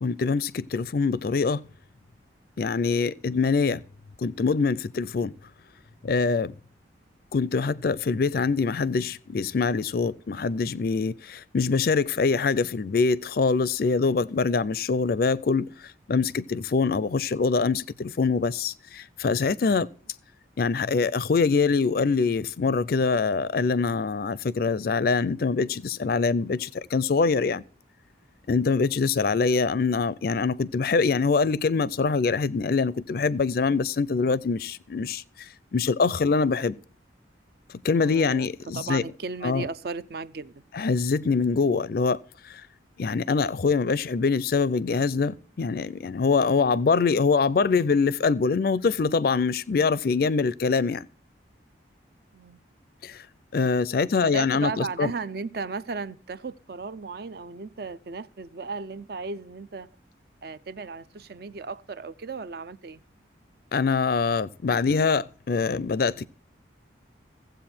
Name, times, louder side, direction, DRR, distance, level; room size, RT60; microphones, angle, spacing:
voice 1, 0.0-1.6 2.6-3.8 4.2-5.3 6.0-6.5 7.3-15.7 16.1-19.9 20.6-27.6 28.5-35.2 35.7-36.8 37.8-39.0 39.4-39.6 40.7-42.2 42.4-42.6 43.0-51.1 53.0-53.2 53.5-55.1 63.7-66.3, left 4 dB, 50° left, 0.4 m, -24 dB
voice 2, 28.7-29.1 38.0-38.5 38.7-40.6 52.3-52.6 54.0-59.9 60.4-63.0, right 4 dB, 55° right, 0.5 m, -35 dB
15.5 x 7.9 x 4.3 m
head